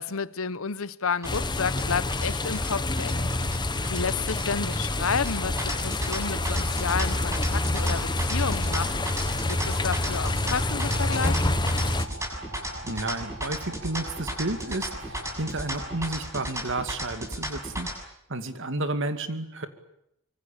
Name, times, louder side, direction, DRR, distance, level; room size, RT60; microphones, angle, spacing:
voice 1, 0.0-3.3 3.9-8.9 9.5-11.6, left 5 dB, 70° left, 1.0 m, -31 dB
sound 1, 1.2-12.1, left 2 dB, 20° left, 1.2 m, -27 dB
sound 2, 1.2-17.9, right 1 dB, 15° right, 7.0 m, -35 dB
sound 3, 4.9-16.1, right 1 dB, 80° right, 6.7 m, -43 dB
voice 2, 12.8-17.9 18.3-19.7, right 2 dB, 60° right, 2.4 m, -31 dB
25.0 x 24.0 x 8.7 m
head